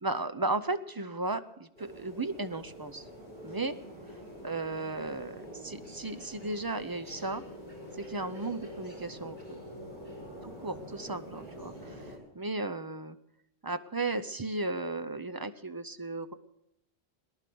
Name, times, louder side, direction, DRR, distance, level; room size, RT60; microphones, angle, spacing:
voice 1, 0.0-3.0 3.4-3.7 4.1-7.4 8.0-9.6 10.4-13.2 13.6-16.3, right 2 dB, 25° right, 11 dB, 0.6 m, -35 dB
sound 1, 1.8-12.2, equal, 40° right, 5.3 m, -46 dB
19.0 x 11.0 x 6.9 m, 0.80 s
omnidirectional pair, 1.1 m